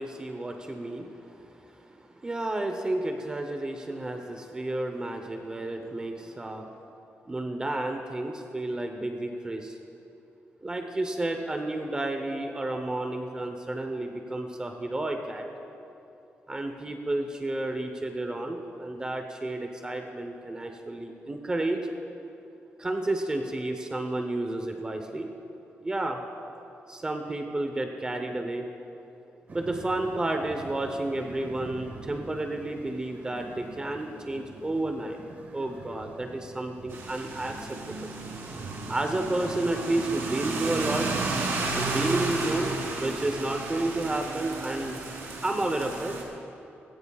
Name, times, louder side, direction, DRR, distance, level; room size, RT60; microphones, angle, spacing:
voice 1, 0.0-6.7 7.3-9.8 10.6-15.5 16.5-21.9 22.8-25.3 25.8-26.2 26.9-28.7 29.5-35.2 35.5-38.1 38.9-41.1 41.8-45.0 45.4-46.2, right 2 dB, 20° right, 4 dB, 0.8 m, -31 dB
sound 1, 29.5-43.8, right 2 dB, 40° right, 1.6 m, -47 dB
sound 2, 36.9-46.2, right 3 dB, 75° right, 3.0 m, -33 dB
20.5 x 16.5 x 2.4 m, 2.9 s
wide cardioid pair, 160°, 4 cm